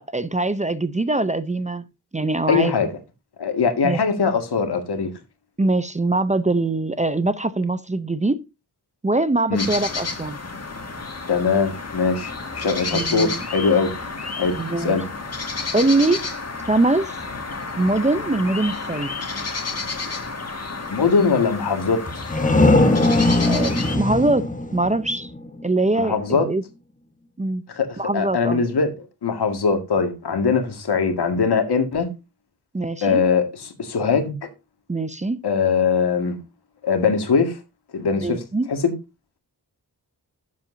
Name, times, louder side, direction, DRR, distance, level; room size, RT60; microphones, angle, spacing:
voice 1, 0.0-1.8 2.1-2.9 3.8-4.0 5.6-8.4 9.0-10.4 12.9-13.4 14.6-15.0 15.7-16.2 16.7-17.1 17.8-19.1 23.4-24.5 24.7-25.3 25.6-26.6 27.4-27.6 28.0-28.6 32.7-33.2 34.9-35.4 38.2-38.7, right 2 dB, 20° right, 0.6 m, -22 dB
voice 2, 2.5-2.9 3.4-5.1 9.5-9.7 11.3-13.9 14.4-15.1 20.9-22.0 26.0-26.5 27.7-28.9 29.2-32.1 33.0-34.5 35.4-36.4 36.8-37.6 37.9-38.4 38.7-38.9, left 5 dB, 80° left, 2.0 m, -21 dB
sound 1, 9.5-24.0, left 3 dB, 40° left, 1.8 m, -31 dB
sound 2, 22.1-25.7, left 2 dB, 20° left, 1.1 m, -20 dB
12.0 x 7.5 x 2.7 m
wide cardioid pair, 130°, 39 cm